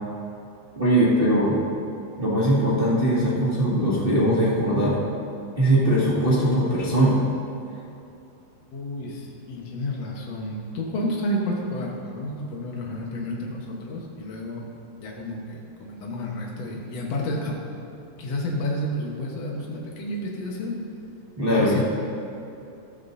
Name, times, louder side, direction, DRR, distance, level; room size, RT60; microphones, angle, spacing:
voice 1, 0.7-1.6 2.2-5.0 5.6-7.2 21.4-21.8, right 1 dB, 35° right, -9 dB, 0.8 m, -20 dB
voice 2, 8.7-14.6 15.0-17.6 18.2-20.8 21.5-21.8, left 1 dB, 80° left, -2 dB, 1.4 m, -30 dB
14.5 x 13.5 x 2.7 m, 2.7 s
omnidirectional pair, 5.0 m